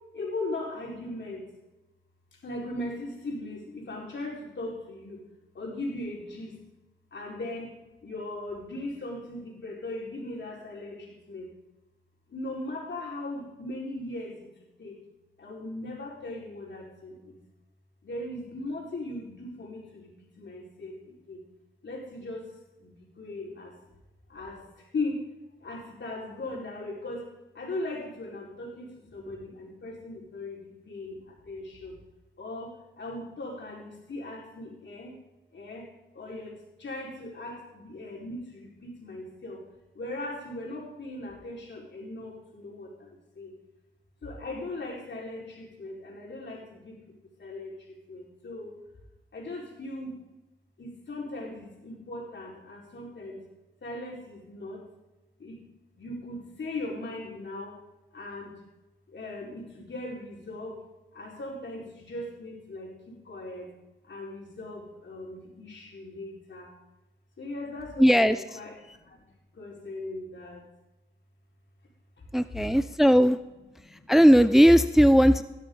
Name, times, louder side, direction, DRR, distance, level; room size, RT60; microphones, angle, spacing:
voice 1, 0.1-1.4 2.3-5.2 5.5-6.6 7.1-7.7 8.0-11.5 12.3-14.5 14.8-15.0 15.4-17.4 18.0-21.4 21.8-22.5 22.8-23.7 24.3-25.2 25.6-27.3 27.5-32.0 32.4-35.1 35.5-35.9 36.1-39.6 39.9-43.5 44.2-47.0 47.4-48.7 49.3-50.2 50.8-53.4 53.8-54.8 55.4-55.6 56.0-57.8 58.1-58.6 59.1-60.8 61.1-63.7 64.1-66.7 67.4-69.2 69.5-70.6 72.5-72.7 73.8-74.1, left 2 dB, 60° left, -2 dB, 4.7 m, -38 dB
voice 2, 68.0-68.6 72.3-73.4 74.1-75.4, equal, ahead, 12 dB, 0.6 m, -18 dB
17.5 x 12.0 x 3.9 m, 1.0 s
supercardioid pair, 45°, 21 cm